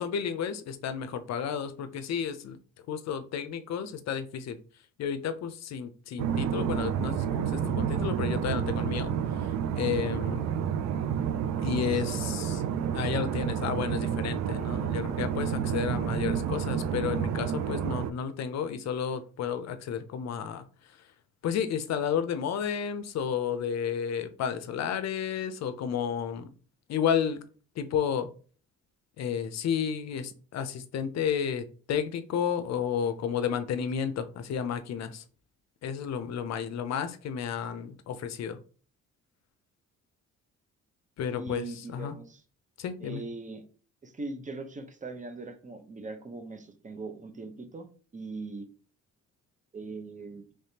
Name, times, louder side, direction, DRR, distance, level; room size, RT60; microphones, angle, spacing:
voice 1, 0.0-2.6 2.9-4.6 5.0-10.5 11.6-12.6 12.9-21.1 21.4-26.5 26.9-27.4 27.8-28.3 29.2-35.2 35.8-38.6 41.2-42.1 42.8-43.2, left 7 dB, 60° left, 11 dB, 0.5 m, -32 dB
sound 1, 6.2-18.1, right 8 dB, 65° right, 0.4 m, -30 dB
voice 2, 11.8-12.8 41.3-42.4 43.0-43.6 44.0-48.7 49.7-50.5, right 3 dB, 25° right, 7 dB, 0.7 m, -41 dB
3.4 x 3.2 x 2.8 m, 0.40 s
cardioid pair, 90°, 30 cm